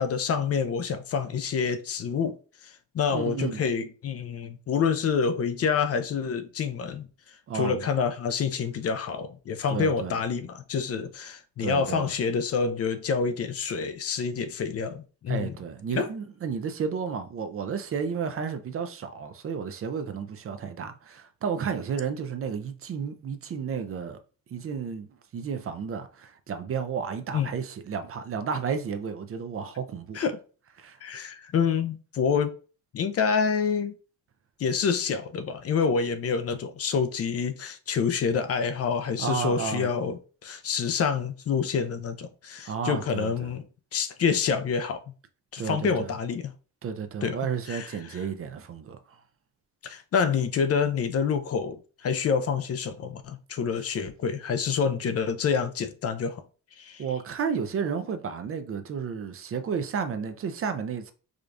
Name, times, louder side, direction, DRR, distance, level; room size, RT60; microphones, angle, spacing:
voice 1, 0.0-2.4 2.6-15.5 15.9-16.1 27.3-27.5 30.1-30.4 31.0-32.6 32.9-33.9 34.6-43.6 43.9-45.0 45.5-46.5 47.2-47.4 47.7-48.2 49.8-56.4 56.8-57.0, left 6 dB, 45° left, 0.5 m, -27 dB
voice 2, 3.1-3.6 7.5-7.9 9.7-10.2 11.6-12.1 15.3-24.2 24.5-25.1 25.3-30.2 30.8-31.0 39.2-39.9 42.6-43.5 45.6-46.1 46.8-49.0 57.0-61.1, right 6 dB, 45° right, 0.5 m, -32 dB
4.9 x 2.3 x 2.5 m
cardioid pair, 115°, 33 cm